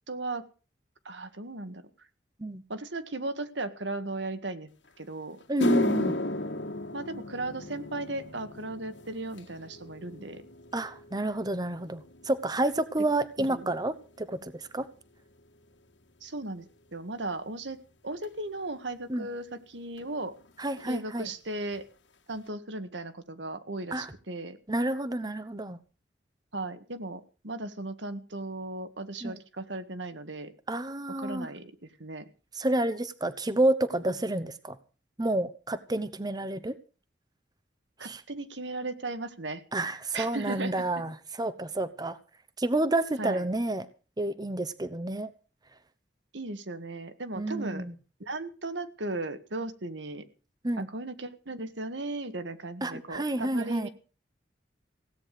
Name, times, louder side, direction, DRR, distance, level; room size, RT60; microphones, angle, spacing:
voice 1, 0.1-0.4 1.1-1.8 2.7-4.7 5.0-5.4 6.9-10.4 13.4-13.7 16.2-17.8 18.0-20.3 20.9-21.8 22.3-24.6 26.5-30.5 31.2-31.7 32.0-32.3 38.0-39.6 40.1-40.8 43.2-43.5 46.3-47.8 48.2-50.3 50.8-53.9, right 2 dB, 80° right, 1.8 m, -36 dB
sound 1, 4.9-5.0 5.4-13.9 14.2-14.6 15.4-15.5 18.2-18.3 20.0-20.1 20.3-20.5 20.8-21.3 21.7-21.8 22.3-22.4, left 2 dB, 85° left, 2.1 m, -35 dB
voice 2, 5.5-6.1 10.7-14.9 19.1-19.3 20.6-21.3 23.9-24.1 24.7-25.8 29.2-29.4 30.7-31.5 32.5-34.8 35.2-36.7 38.0-38.2 39.7-42.2 42.6-43.9 44.2-45.3 47.3-47.9 50.6-50.9 52.8-53.9, right 1 dB, 20° right, 0.9 m, -29 dB
16.5 x 9.6 x 6.7 m
head